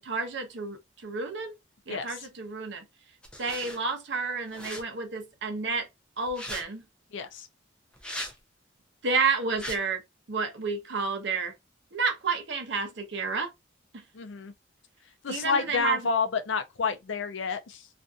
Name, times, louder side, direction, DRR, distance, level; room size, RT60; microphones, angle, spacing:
voice 1, 0.0-1.6 1.9-2.8 3.4-5.9 6.2-6.8 9.0-10.0 10.3-11.5 11.9-13.5 13.9-14.0 15.3-16.1, right 4 dB, 60° right, 0.7 m, -30 dB
voice 2, 1.9-2.2 7.1-7.5 14.1-14.5 15.2-17.9, left 5 dB, 70° left, 0.5 m, -29 dB
sound 1, 3.2-3.8 4.5-4.8 6.3-6.6 7.9-8.3 9.5-9.8, equal, 5° left, 0.4 m, -38 dB
2.5 x 2.5 x 2.3 m
head